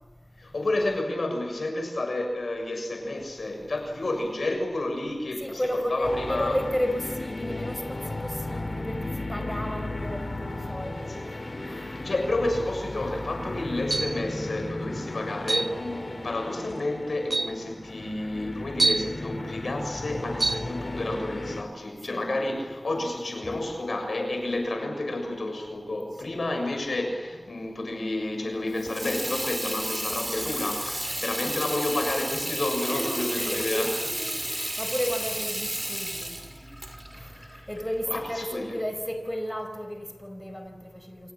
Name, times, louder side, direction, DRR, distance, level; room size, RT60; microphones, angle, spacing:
voice 1, 0.4-6.6 11.1-11.2 11.6-33.9 37.2-37.7 38.1-38.7, left 2 dB, 85° left, 6.7 m, -30 dB
voice 2, 5.4-11.2 11.7-11.8 22.1-22.3 23.4-23.6 26.2-26.4 32.8-36.4 37.2-37.3 37.7-41.3, equal, 10° left, 5.0 m, -33 dB
sound 1, 6.0-21.6, left 2 dB, 50° left, 3.9 m, -35 dB
sound 2, 13.9-14.3 15.5-15.8 16.7-16.8 17.3-17.6 18.8-19.1 20.4-20.7, right 3 dB, 65° right, 0.9 m, -25 dB
Water tap faucet / Sink (filling or washing), 28.7-38.3, right 1 dB, 20° right, 5.9 m, -33 dB
29.5 x 27.0 x 7.5 m
wide cardioid pair, 45°, 0 cm